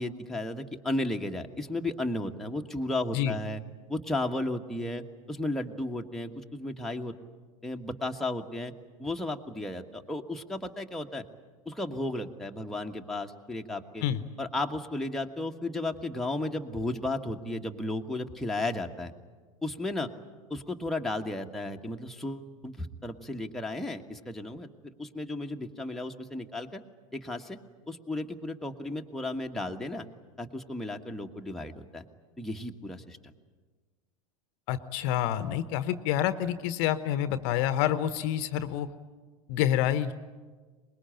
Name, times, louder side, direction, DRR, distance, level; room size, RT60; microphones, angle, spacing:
voice 1, 0.0-3.6 3.9-7.1 7.6-8.7 9.0-11.3 11.6-14.0 14.4-19.1 19.6-20.1 20.5-26.8 27.1-27.6 27.9-30.1 30.4-32.0 32.4-33.2, left 2 dB, ahead, 1 dB, 1.4 m, -34 dB
voice 2, 34.7-38.9 39.5-40.1, left 11 dB, 50° left, 13 dB, 1.0 m, -28 dB
24.0 x 21.0 x 9.0 m, 1.4 s
figure-of-eight pair, 85°, 18 cm